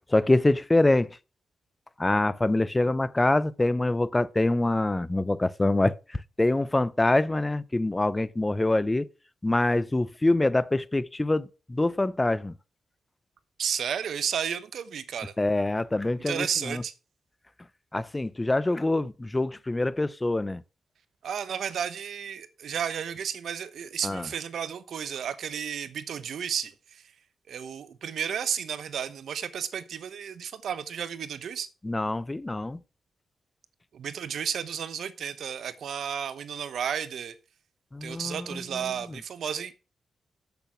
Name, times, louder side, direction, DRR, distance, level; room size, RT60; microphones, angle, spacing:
voice 1, 0.1-1.2 2.0-6.0 6.4-9.1 9.4-12.5 15.4-16.8 17.9-20.6 24.0-24.3 31.8-32.8 37.9-38.9, left 2 dB, 20° left, 0.7 m, -25 dB
voice 2, 13.6-15.3 16.3-16.9 21.2-27.0 27.5-31.7 33.9-37.3 38.0-39.7, right 8 dB, 75° right, 0.9 m, -32 dB
8.1 x 7.0 x 6.0 m
supercardioid pair, 50°, 0 cm